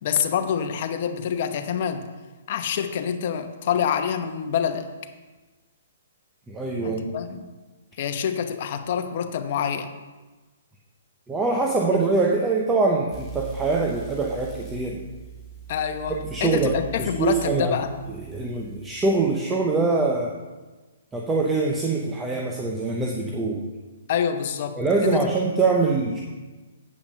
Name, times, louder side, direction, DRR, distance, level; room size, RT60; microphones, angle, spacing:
voice 1, 0.0-2.1 2.5-4.9 6.8-7.5 8.0-9.9 11.9-12.0 15.7-17.9 24.1-25.3, left 8 dB, 45° left, 7 dB, 0.9 m, -26 dB
voice 2, 6.5-7.2 11.3-15.0 16.2-17.8 18.3-20.3 21.1-23.6 24.8-26.2, right 3 dB, 10° right, -1 dB, 0.7 m, -24 dB
sound 1, 13.1-19.3, right 7 dB, 10° left, 1.7 m, -41 dB
8.4 x 5.7 x 6.7 m, 1.2 s
hypercardioid pair, 155°, 0 cm